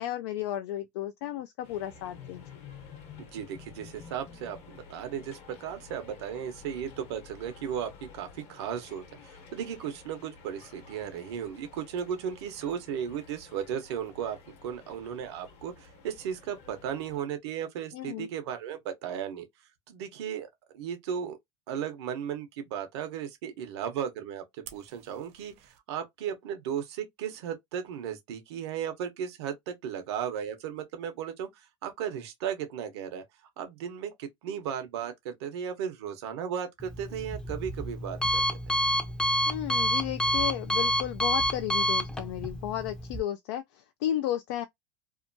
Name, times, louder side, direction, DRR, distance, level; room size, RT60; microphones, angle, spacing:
voice 1, 0.0-2.5 17.9-18.3 39.5-44.6, left 12 dB, 80° left, 0.4 m, -33 dB
sound 1, 1.6-17.2, left 5 dB, 50° left, 0.9 m, -51 dB
voice 2, 3.2-14.4 14.6-19.4 19.9-20.5 20.7-21.4 21.7-31.5 31.8-33.2 33.6-38.6, right 8 dB, 85° right, 0.9 m, -35 dB
Fire, 24.6-25.8, right 10 dB, 55° right, 0.7 m, -50 dB
Alarm, 36.8-43.2, equal, 5° left, 0.5 m, -29 dB
2.7 x 2.2 x 2.6 m
supercardioid pair, 125°, 14 cm